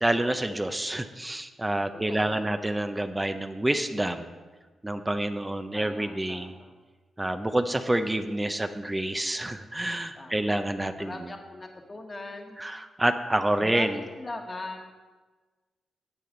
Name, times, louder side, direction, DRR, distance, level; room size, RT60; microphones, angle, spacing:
voice 1, 0.0-4.3 4.8-6.5 7.2-11.1 12.6-14.0, right 1 dB, 15° right, 8 dB, 0.7 m, -28 dB
voice 2, 1.9-2.5 5.7-6.7 10.1-10.3 11.0-12.6 13.6-14.9, left 2 dB, 35° left, 3 dB, 1.6 m, -40 dB
9.9 x 8.5 x 3.9 m, 1.3 s
supercardioid pair, 50°, 0 cm